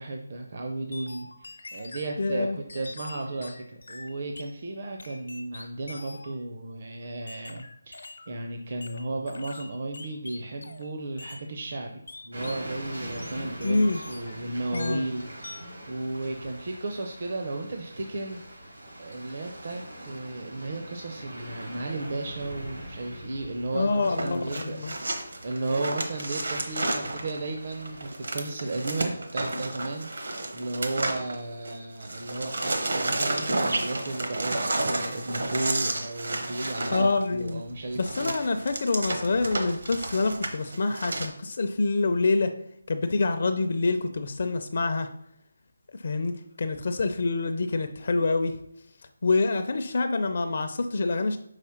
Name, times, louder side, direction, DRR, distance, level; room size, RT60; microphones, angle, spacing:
voice 1, 0.0-2.5 2.7-24.8 25.1-38.3, right 2 dB, 40° right, 3 dB, 0.6 m, -34 dB
sound 1, 0.9-2.2 2.7-4.6 5.0-6.4 7.3-8.3 8.8-10.9 11.2-11.5 12.1-12.7 13.1-14.4 14.7-15.1 15.4-15.8, left 3 dB, 75° left, 0.9 m, -44 dB
voice 2, 2.2-2.6 13.6-14.0 14.7-15.1 23.7-24.9 36.9-37.6 38.0-42.5 42.9-45.1 46.0-48.6 49.2-51.4, left 3 dB, 45° left, 7 dB, 0.5 m, -26 dB
sound 2, 12.3-28.1, right 1 dB, 85° right, 2.6 m, -43 dB
sound 3, 24.0-31.7 32.0-41.3, right 2 dB, 70° right, 1.1 m, -31 dB
4.9 x 4.2 x 5.7 m, 0.77 s
figure-of-eight pair, 175°, 0 cm